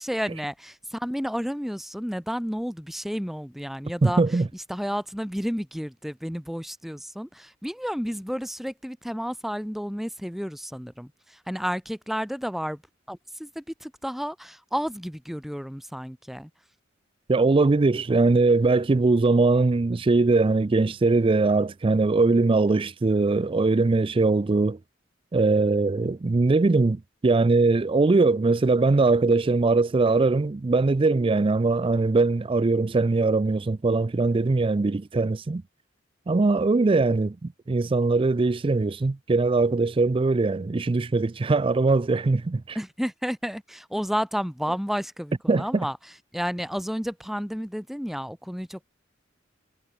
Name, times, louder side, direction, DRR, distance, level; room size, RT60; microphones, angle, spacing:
voice 1, 0.0-4.2 4.5-12.8 13.1-16.5 42.7-46.0 46.3-48.8, equal, ahead, 1.5 m, -31 dB
voice 2, 4.0-4.5 17.3-24.8 25.3-35.6 36.3-42.8 45.5-45.7, right 3 dB, 25° right, 0.4 m, -21 dB
head